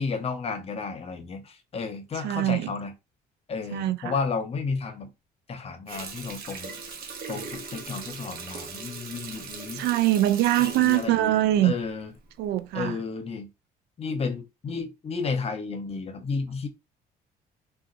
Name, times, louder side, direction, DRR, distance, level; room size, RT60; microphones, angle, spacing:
voice 1, 0.0-2.9 3.5-5.1 5.5-6.7 7.3-9.8 10.6-12.1 12.7-13.5 14.0-16.7, left 4 dB, 35° left, 0.8 m, -32 dB
voice 2, 2.2-2.7 3.7-4.1 9.7-11.7 12.4-13.0, right 14 dB, 80° right, 0.4 m, -23 dB
Water tap faucet, 5.9-12.2 12.6-12.8, right 5 dB, 60° right, 0.9 m, -40 dB
3.7 x 2.4 x 2.5 m
cardioid pair, 110°, 17 cm